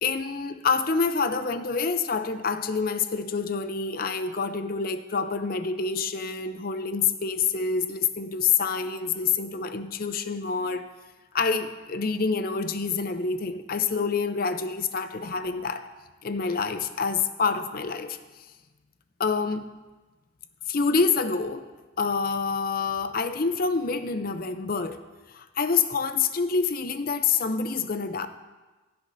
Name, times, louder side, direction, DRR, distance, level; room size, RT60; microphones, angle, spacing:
voice 1, 0.0-10.8 11.3-15.9 16.2-18.2 19.2-19.7 20.7-21.6 22.0-25.0 25.3-28.3, left 5 dB, 45° left, 9 dB, 0.5 m, -27 dB
15.5 x 9.4 x 2.6 m, 1.2 s
head